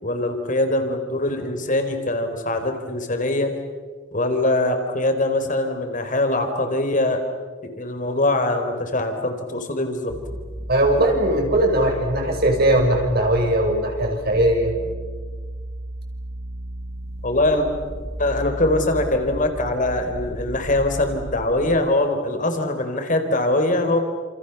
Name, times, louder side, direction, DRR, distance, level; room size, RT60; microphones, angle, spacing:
voice 1, 0.0-3.5 4.1-7.2 7.6-10.1 17.2-17.7 18.2-24.0, left 2 dB, 40° left, 6 dB, 4.1 m, -22 dB
sound 1, 10.1-21.8, equal, 35° right, 2.2 m, -34 dB
voice 2, 10.7-14.7, right 1 dB, 50° right, 2 dB, 6.5 m, -19 dB
29.5 x 28.0 x 7.1 m, 1.5 s
head